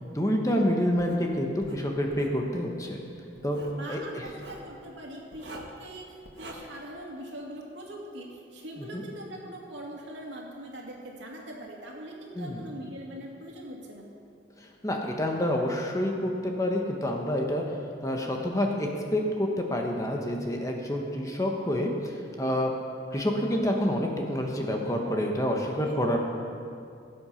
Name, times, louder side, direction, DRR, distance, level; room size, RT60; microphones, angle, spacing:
voice 1, 0.0-3.0 3.4-3.6 3.9-4.0 8.9-9.0 12.3-12.6 14.8-17.6 18.0-22.7 23.1-26.2, equal, 20° left, 1 dB, 1.2 m, -28 dB
Writing, 1.0-1.2 1.6-2.4 3.4-3.8 4.3-4.7 5.3-5.8 6.2-6.5, right 1 dB, 65° right, 1.5 m, -45 dB
voice 2, 3.7-14.1 25.8-26.2, right 1 dB, 80° right, -2 dB, 2.5 m, -42 dB
17.5 x 8.0 x 5.8 m, 2.4 s
head